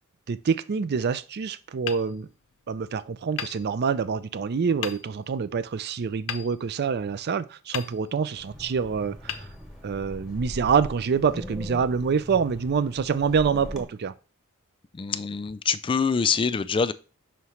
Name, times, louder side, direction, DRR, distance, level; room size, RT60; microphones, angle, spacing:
voice 1, 0.3-2.3 2.7-9.5 9.8-14.1, right 6 dB, 50° right, 0.4 m, -26 dB
Hammer, 1.8-2.8 3.3-4.3 4.8-5.4 6.3-7.2 7.7-8.5 9.2-10.2, left 9 dB, 65° left, 0.6 m, -38 dB
Wind, 8.3-13.9, equal, 5° right, 1.2 m, -40 dB
voice 2, 14.9-16.9, left 5 dB, 25° left, 0.3 m, -25 dB
5.7 x 3.2 x 5.5 m
head